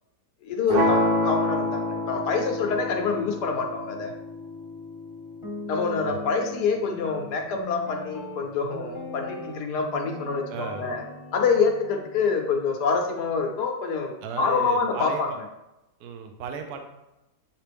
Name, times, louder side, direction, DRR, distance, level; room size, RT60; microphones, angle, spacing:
voice 1, 0.4-4.1 5.7-11.0 11.3-15.3, left 5 dB, 75° left, 3 dB, 1.3 m, -26 dB
sound 1, 0.7-6.7, left 1 dB, 45° right, 0.8 m, -28 dB
Guitar, 5.4-13.6, left 2 dB, 20° left, 0.9 m, -40 dB
voice 2, 10.5-10.9 14.2-15.2 16.0-16.8, right 6 dB, 70° right, 6 dB, 1.1 m, -35 dB
8.2 x 3.4 x 3.4 m, 0.95 s
omnidirectional pair, 1.9 m